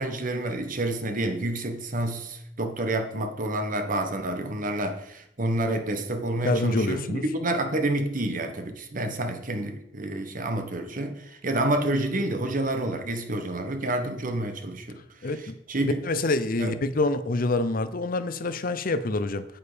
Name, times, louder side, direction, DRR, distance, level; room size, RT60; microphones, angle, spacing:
voice 1, 0.0-15.0 15.4-16.0 16.6-16.8, right 1 dB, 45° right, 1.4 m, -29 dB
voice 2, 6.4-7.2 15.2-15.5 15.8-19.5, left 2 dB, 50° left, 0.7 m, -26 dB
9.0 x 8.9 x 5.1 m
head